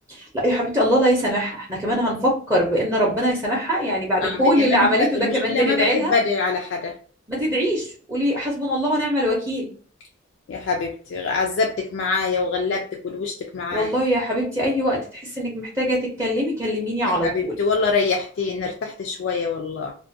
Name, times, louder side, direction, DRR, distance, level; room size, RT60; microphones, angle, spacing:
voice 1, 0.1-6.1 7.3-9.7 13.7-17.5, equal, 15° right, -4 dB, 0.5 m, -22 dB
voice 2, 4.2-7.0 10.5-13.9 17.0-20.0, left 4 dB, 65° left, 2 dB, 0.3 m, -25 dB
2.4 x 2.1 x 2.6 m, 0.44 s
head